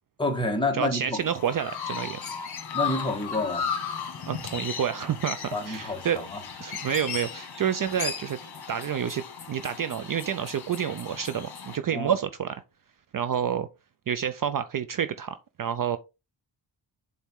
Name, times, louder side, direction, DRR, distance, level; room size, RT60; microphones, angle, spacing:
voice 1, 0.2-1.2 2.7-3.7 5.5-6.4 11.9-12.1, left 2 dB, 10° left, 1.6 m, -28 dB
voice 2, 0.7-2.2 4.3-6.3 6.6-8.4 8.7-12.6 13.1-13.7 14.1-16.0, right 8 dB, 50° right, 0.5 m, -29 dB
Chirp tweet, 1.2-11.8, left 7 dB, 55° left, 1.8 m, -36 dB
7.2 x 4.4 x 3.6 m
wide cardioid pair, 175°, 45 cm